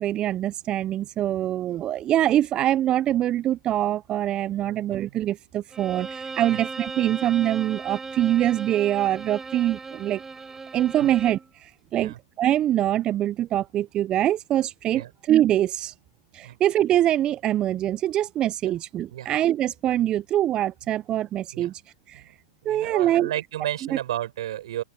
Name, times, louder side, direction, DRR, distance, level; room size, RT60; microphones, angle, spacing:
voice 1, 0.0-10.2 10.7-15.9 16.3-21.8 22.1-22.3 22.7-23.3, right 12 dB, 30° right, 0.5 m, -24 dB
voice 2, 4.6-5.2 6.5-6.6 11.0-11.1 12.0-12.2 14.9-15.1 16.4-16.6 18.6-18.7 19.1-19.3 21.5-21.7 22.1-22.4 22.6-24.8, right 12 dB, 65° right, 7.1 m, -33 dB
Bowed string instrument, 5.7-11.5, right 4 dB, 10° right, 4.5 m, -37 dB
open air
hypercardioid pair, 115°, 3 cm